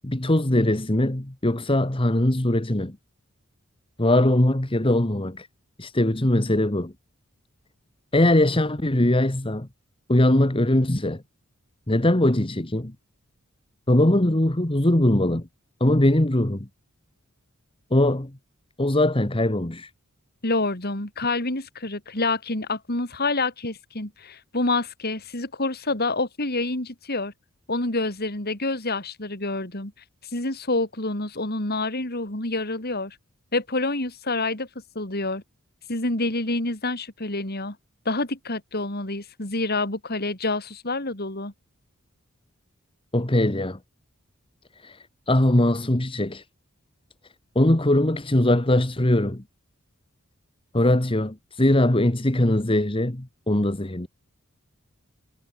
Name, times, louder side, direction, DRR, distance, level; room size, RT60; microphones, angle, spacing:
voice 1, 0.0-3.0 4.0-5.5 5.8-6.9 8.1-9.7 10.1-11.2 11.9-12.9 13.9-15.5 15.8-16.7 17.9-18.3 18.8-19.9 43.1-43.8 44.8-45.0 45.3-46.4 47.5-49.4 50.7-54.1, left 1 dB, 25° left, 1.5 m, -21 dB
voice 2, 20.4-27.3 27.7-29.9 30.3-33.2 33.5-34.7 34.9-35.4 35.9-37.8 38.0-41.5, left 2 dB, 45° left, 4.5 m, -27 dB
head